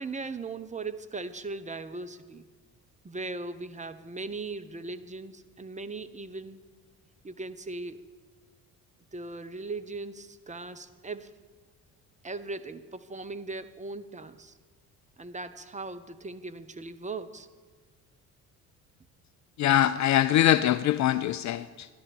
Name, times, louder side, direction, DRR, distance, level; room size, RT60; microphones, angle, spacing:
voice 1, 0.0-2.5 3.0-6.6 7.2-8.0 9.1-11.3 12.2-14.5 15.2-17.5, right 3 dB, 15° right, 9 dB, 0.8 m, -38 dB
voice 2, 19.6-21.9, left 12 dB, 40° left, 15 dB, 0.5 m, -23 dB
13.5 x 11.0 x 7.1 m, 1.5 s
figure-of-eight pair, 50°, 46 cm